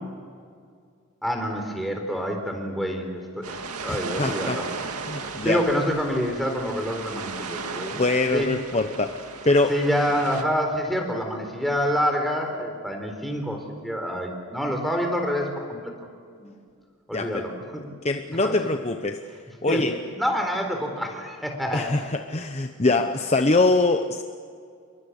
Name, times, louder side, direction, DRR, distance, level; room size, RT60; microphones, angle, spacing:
voice 1, 1.2-4.6 5.2-8.0 8.3-8.5 9.7-15.9 16.4-16.6 17.1-17.8 18.4-18.5 19.7-19.8 20.2-21.9, equal, ahead, 2 dB, 4.1 m, -27 dB
sound 1, 3.4-10.4, right 4 dB, 90° right, 2.2 m, -35 dB
voice 2, 3.9-4.6 5.1-5.6 7.9-9.8 17.1-17.5 18.0-19.2 19.6-20.0 21.7-24.2, left 2 dB, 30° left, 6 dB, 0.9 m, -23 dB
28.5 x 23.0 x 8.4 m, 2.2 s
head